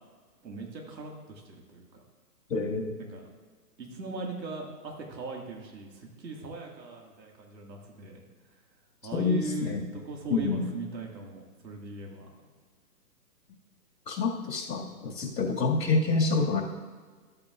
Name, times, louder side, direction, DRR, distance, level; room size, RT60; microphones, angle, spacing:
voice 1, 0.4-2.0 3.0-3.3 3.8-8.2 9.0-12.5, right 3 dB, 90° right, 0 dB, 2.2 m, -40 dB
voice 2, 2.5-2.9 9.1-9.8 10.3-10.7 14.1-16.6, left 4 dB, 75° left, 0 dB, 2.3 m, -27 dB
13.5 x 8.7 x 2.5 m, 1.5 s
hypercardioid pair, 175°, 49 cm